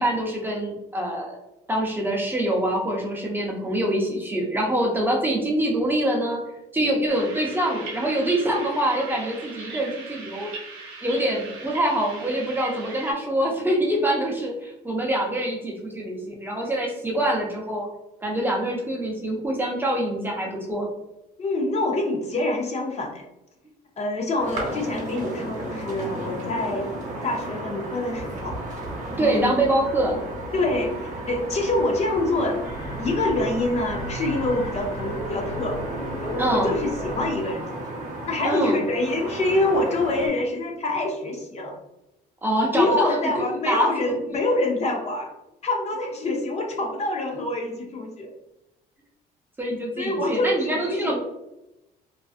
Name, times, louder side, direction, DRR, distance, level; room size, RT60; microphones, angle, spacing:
voice 1, 0.0-1.4 1.7-6.4 6.7-10.5 11.0-17.9 18.2-20.9 29.2-30.2 36.4-36.7 38.4-38.8 42.4-43.2 43.6-43.9 49.6-51.2, right 1 dB, 10° right, -1 dB, 0.6 m, -25 dB
sound 1, 7.1-13.1, right 3 dB, 85° right, 0.6 m, -39 dB
voice 2, 21.4-23.2 24.0-26.9 27.2-28.6 29.2-29.6 30.5-32.6 33.0-35.8 36.2-38.0 38.3-41.7 42.7-45.3 45.6-48.3 50.0-51.2, left 2 dB, 40° left, 1 dB, 0.5 m, -26 dB
sound 2, 24.4-40.3, right 1 dB, 45° right, 0.9 m, -34 dB
sound 3, 32.6-37.6, equal, 80° left, 1.1 m, -35 dB
2.4 x 2.4 x 2.4 m, 0.90 s
cardioid pair, 110°, 17 cm